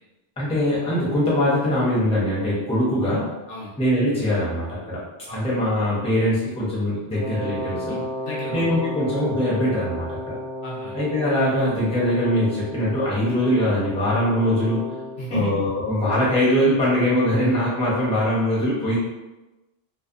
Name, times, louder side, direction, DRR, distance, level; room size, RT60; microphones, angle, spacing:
voice 1, 0.4-3.3 3.8-5.0 5.3-8.0 8.5-10.4 10.9-14.9 15.3-19.0, left 1 dB, 5° left, -7 dB, 0.6 m, -22 dB
Wind instrument woodwind instrument, 7.1-15.2, left 1 dB, 50° left, 0.7 m, -33 dB
voice 2, 7.9-8.8 10.6-11.0 15.2-15.5, left 1 dB, 75° left, -5 dB, 1.0 m, -32 dB
2.7 x 2.0 x 2.4 m, 1.0 s
omnidirectional pair, 1.1 m